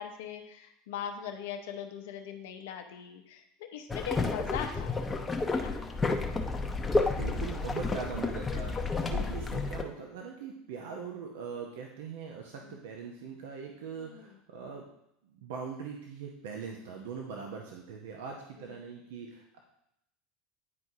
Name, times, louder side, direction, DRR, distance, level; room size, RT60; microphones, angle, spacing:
voice 1, 0.0-4.9 5.5-5.7 7.0-7.1 12.6-12.7 14.0-14.2, left 8 dB, 70° left, 5 dB, 0.8 m, -40 dB
sound 1, 3.9-9.8, left 3 dB, 15° left, 0.7 m, -31 dB
voice 2, 7.1-14.8 15.2-19.6, right 6 dB, 70° right, 1 dB, 0.8 m, -41 dB
9.5 x 4.6 x 2.7 m, 0.79 s
hypercardioid pair, 80°, 0 cm